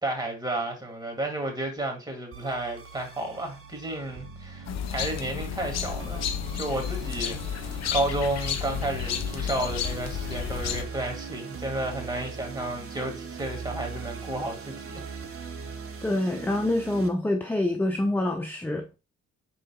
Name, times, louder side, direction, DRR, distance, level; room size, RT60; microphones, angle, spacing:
voice 1, 0.0-6.3 6.5-15.1, right 1 dB, 15° right, 1.9 m, -32 dB
sound 1, 2.3-17.1, right 5 dB, 45° right, 1.0 m, -40 dB
sound 2, 4.6-10.8, left 9 dB, 60° left, 0.6 m, -32 dB
voice 2, 16.0-18.8, left 1 dB, 5° left, 0.5 m, -26 dB
5.2 x 3.8 x 2.3 m
cardioid pair, 90°, 30 cm